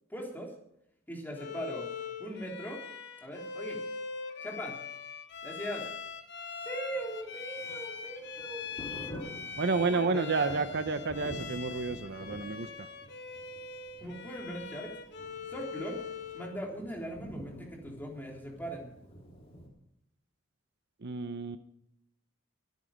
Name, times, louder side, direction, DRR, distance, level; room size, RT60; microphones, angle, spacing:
voice 1, 0.1-0.5 1.1-1.9 2.2-2.8 3.2-3.8 4.4-4.8 5.4-5.9 6.6-9.4 9.7-10.6 14.0-15.0 15.5-16.0 16.3-18.9, equal, 10° left, 0 dB, 3.3 m, -40 dB
Bowed string instrument, 1.4-16.6, left 5 dB, 55° left, 1.3 m, -42 dB
Thunder, 6.9-19.7, equal, 30° left, 3.8 m, -49 dB
voice 2, 9.6-12.9 21.0-21.6, right 4 dB, 55° right, 11 dB, 0.8 m, -30 dB
23.0 x 9.3 x 5.1 m, 0.78 s
head